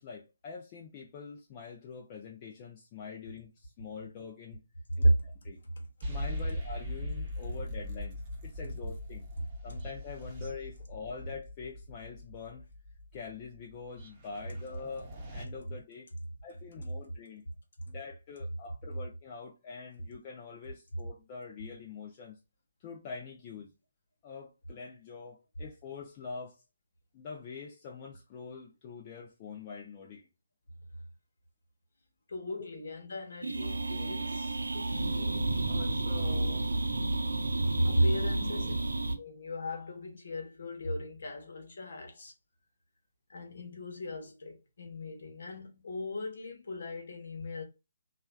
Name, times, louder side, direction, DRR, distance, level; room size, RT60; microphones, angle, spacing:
voice 1, 0.0-4.6 5.0-5.6 6.1-9.3 9.6-12.6 13.1-16.1 16.4-17.4 17.9-22.4 22.8-23.7 24.2-26.6 27.1-30.3 32.6-32.8 35.9-36.0, left 5 dB, 30° left, 0.5 m, -45 dB
sound 1, 6.0-15.4, left 1 dB, 25° right, 0.9 m, -41 dB
voice 2, 32.3-36.7 37.6-38.7 39.2-42.3 43.3-47.6, equal, 60° left, 1.1 m, -35 dB
sound 2, 33.4-39.2, right 2 dB, 80° right, 0.6 m, -31 dB
3.1 x 2.4 x 2.2 m
figure-of-eight pair, 145°, 0 cm